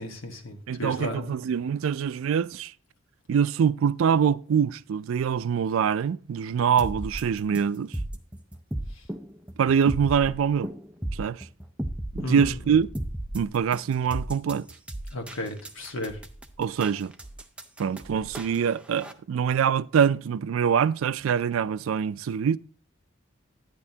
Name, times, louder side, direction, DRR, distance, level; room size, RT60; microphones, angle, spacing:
voice 1, 0.0-1.4 12.2-12.8 15.1-16.2, left 1 dB, 80° left, 1.4 m, -34 dB
voice 2, 0.7-2.7 3.3-7.9 9.6-10.7 11.1-11.5 12.1-12.9 13.3-14.7 16.6-17.1 17.8-22.6, right 7 dB, 85° right, 0.3 m, -24 dB
sound 1, 6.8-19.1, right 1 dB, 5° right, 0.4 m, -35 dB
10.5 x 9.7 x 2.8 m
head